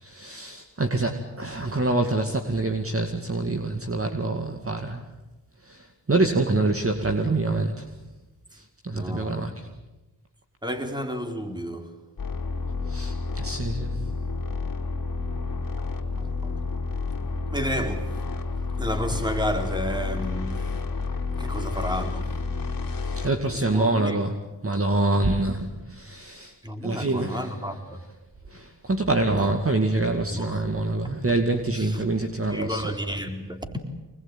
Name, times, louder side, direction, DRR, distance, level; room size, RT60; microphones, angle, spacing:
voice 1, 0.0-5.0 5.7-7.8 8.8-9.5 12.9-14.1 23.2-24.3 24.6-26.5 26.8-27.4 28.5-32.8, right 2 dB, 30° right, 2.3 m, -25 dB
voice 2, 8.9-9.6 10.6-12.0 16.2-16.6 17.2-18.2 18.8-20.8 21.4-22.3 23.2-24.3 26.6-28.0 29.4-29.5 30.3-30.6 31.0-31.2 31.7-32.0 32.4-33.8, equal, 10° right, 4.0 m, -32 dB
sound 1, 12.2-23.3, left 4 dB, 50° left, 3.4 m, -30 dB
25.0 x 20.5 x 9.2 m
cardioid pair, 60°, 43 cm